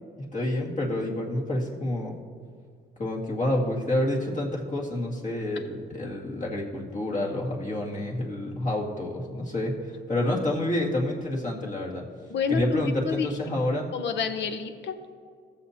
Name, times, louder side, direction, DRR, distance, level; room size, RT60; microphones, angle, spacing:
voice 1, 0.2-2.1 3.0-12.0 12.5-13.9, left 1 dB, 40° left, -2 dB, 1.9 m, -28 dB
voice 2, 12.3-13.3 13.9-15.1, left 6 dB, 65° left, 8 dB, 0.8 m, -29 dB
15.5 x 7.1 x 2.8 m, 2.1 s
cardioid pair, 90°, 20 cm